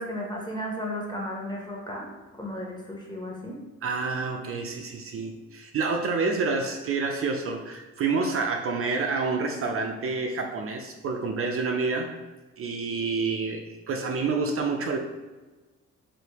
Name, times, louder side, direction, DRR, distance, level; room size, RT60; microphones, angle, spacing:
voice 1, 0.0-2.1 2.4-3.6, equal, 15° left, -2 dB, 0.8 m, -34 dB
voice 2, 3.8-12.1 12.6-15.0, right 4 dB, 50° right, 3 dB, 0.4 m, -28 dB
3.3 x 2.6 x 2.9 m, 1.2 s
cardioid pair, 90°, 30 cm